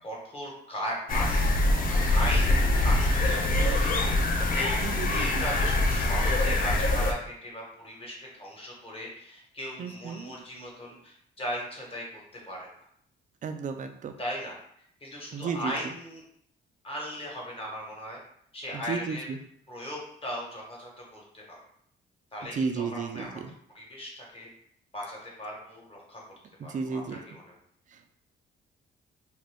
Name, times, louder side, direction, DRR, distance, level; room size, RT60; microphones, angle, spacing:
voice 1, 0.0-1.5 1.9-2.5 2.8-4.8 5.1-12.0 12.4-12.7 14.2-14.6 15.0-16.2 16.8-18.2 18.5-19.3 19.7-21.6 22.3-23.4 23.7-24.5 24.9-26.2 26.6-27.4, equal, 30° left, -2 dB, 1.2 m, -37 dB
sound 1, 1.1-7.1, left 2 dB, 45° left, 0.5 m, -24 dB
voice 2, 2.5-3.0 4.8-5.5 9.8-10.3 13.4-14.1 15.3-15.9 18.7-19.4 22.5-23.5 26.6-27.2 27.9-28.1, right 5 dB, 40° right, 6 dB, 0.4 m, -34 dB
2.6 x 2.5 x 3.4 m, 0.68 s
cardioid pair, 90°, 20 cm